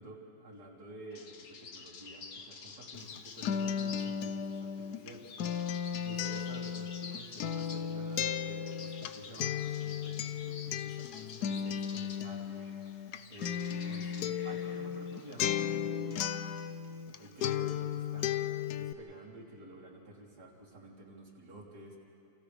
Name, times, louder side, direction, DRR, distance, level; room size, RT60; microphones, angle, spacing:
voice 1, 0.0-5.5 6.0-12.9 13.3-16.4 17.2-22.0, right 1 dB, 85° right, -6 dB, 3.9 m, -50 dB
sound 1, 1.1-15.8, left 5 dB, 65° left, 1.6 m, -50 dB
Acoustic guitar, 2.9-17.2 17.4-18.9, left 8 dB, 90° left, 1.3 m, -35 dB
29.5 x 28.5 x 3.4 m, 2.9 s
omnidirectional pair, 1.7 m